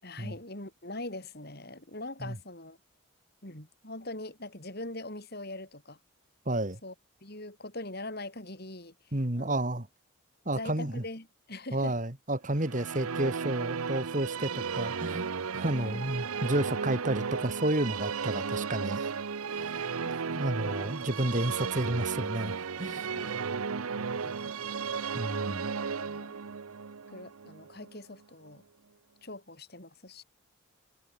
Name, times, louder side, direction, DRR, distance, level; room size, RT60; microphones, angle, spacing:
voice 1, 0.0-2.8 3.4-6.0 6.8-6.9 7.2-8.9 9.3-9.6 10.4-12.0 15.7-16.1 23.1-24.5 25.8-26.4 27.1-28.6 29.2-30.2, left 2 dB, 45° left, 5.1 m, -42 dB
voice 2, 6.5-6.8 9.1-9.9 10.5-11.0 11.7-19.1 19.5-19.9 20.3-23.3 25.1-25.7, right 1 dB, 35° right, 2.2 m, -31 dB
Musical instrument, 12.5-28.0, right 5 dB, 90° right, 0.7 m, -34 dB
head